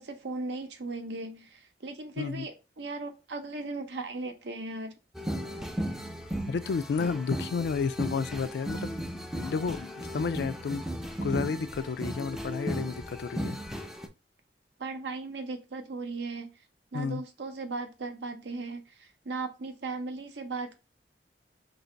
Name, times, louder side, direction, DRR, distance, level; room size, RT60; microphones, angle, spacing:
voice 1, 0.0-5.0 14.8-16.5 16.9-20.8, right 3 dB, 80° right, 0.7 m, -37 dB
voice 2, 2.2-2.5 6.5-8.9 9.3-10.8 11.2-13.6 16.9-17.2, left 5 dB, 70° left, 0.3 m, -31 dB
sound 1, 5.1-14.1, equal, 5° right, 0.4 m, -36 dB
2.9 x 2.7 x 4.3 m
head